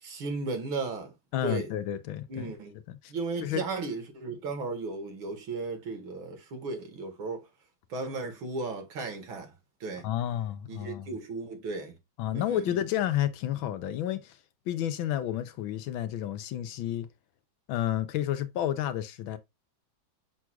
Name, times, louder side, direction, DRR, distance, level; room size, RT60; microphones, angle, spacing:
voice 1, 0.0-1.1 1.4-1.7 2.3-2.7 3.1-7.5 7.9-9.5 9.8-10.1 10.7-12.0 12.3-12.7, right 3 dB, 85° right, 2.5 m, -35 dB
voice 2, 1.3-2.5 2.9-3.1 3.4-3.6 10.0-11.1 12.2-14.4 14.7-17.1 17.7-19.4, left 11 dB, 80° left, 1.5 m, -31 dB
7.0 x 6.1 x 2.3 m
omnidirectional pair, 2.2 m